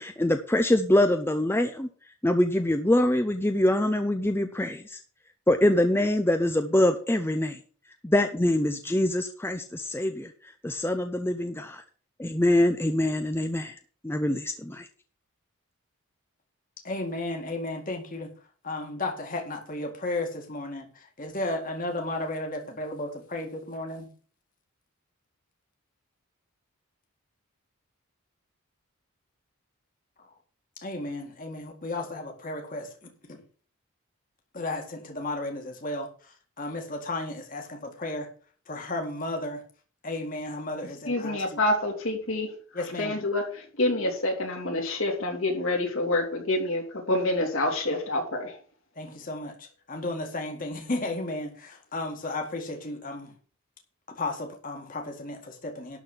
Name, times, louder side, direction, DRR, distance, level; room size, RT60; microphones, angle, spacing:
voice 1, 0.0-1.9 2.2-5.0 5.5-7.6 8.0-10.3 10.6-11.8 12.2-13.8 14.0-14.9, left 1 dB, 10° left, 0.6 m, -24 dB
voice 2, 16.8-18.3 18.6-24.1 30.2-30.3 30.8-33.4 34.5-38.3 38.7-39.6 40.0-41.6 42.7-43.2 49.0-53.3 54.2-56.0, left 2 dB, 40° left, 2.1 m, -34 dB
voice 3, 41.1-48.6, left 2 dB, 65° left, 3.4 m, -27 dB
12.0 x 4.3 x 8.2 m
head